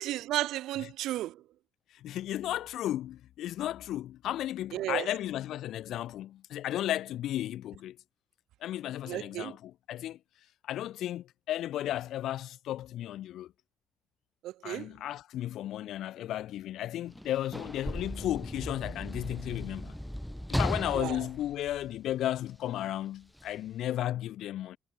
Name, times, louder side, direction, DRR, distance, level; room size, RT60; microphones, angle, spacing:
voice 1, 0.0-1.4 4.7-5.1 9.1-9.5 14.4-14.9 20.9-21.2, right 14 dB, 90° right, 1.5 m, -33 dB
voice 2, 1.9-8.0 8.6-10.2 10.6-13.5 14.6-20.0 20.5-24.8, left 13 dB, 80° left, 3.9 m, -34 dB
Sliding door / Slam, 17.1-22.5 23.4-23.5, equal, 5° left, 4.8 m, -36 dB
cardioid pair, 90°, 0 cm